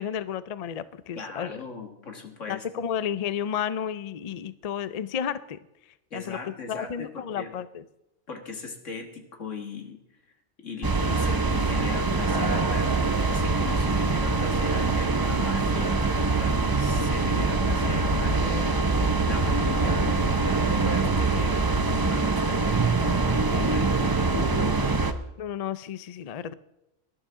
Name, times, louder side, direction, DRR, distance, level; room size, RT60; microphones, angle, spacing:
voice 1, 0.0-1.5 2.5-5.6 6.1-7.8 25.4-26.5, left 8 dB, 50° left, 14 dB, 0.4 m, -32 dB
voice 2, 1.2-2.9 6.1-7.5 8.3-10.0 10.6-16.0 16.4-24.3, left 5 dB, 85° left, 3 dB, 2.2 m, -39 dB
sound 1, 10.8-25.1, right 3 dB, 25° right, 0.5 m, -24 dB
19.5 x 12.0 x 3.7 m, 0.89 s
omnidirectional pair, 1.2 m